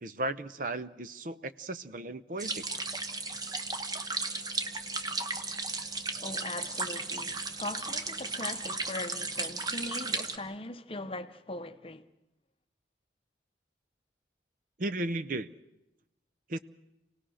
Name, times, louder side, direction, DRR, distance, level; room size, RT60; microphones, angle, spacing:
voice 1, 0.0-2.6 14.8-15.5 16.5-16.6, right 2 dB, 50° right, 0.7 m, -35 dB
sound 1, 2.4-10.4, right 3 dB, 20° right, 1.1 m, -35 dB
voice 2, 6.2-12.1, left 2 dB, 30° left, 0.8 m, -40 dB
27.0 x 18.0 x 6.3 m
head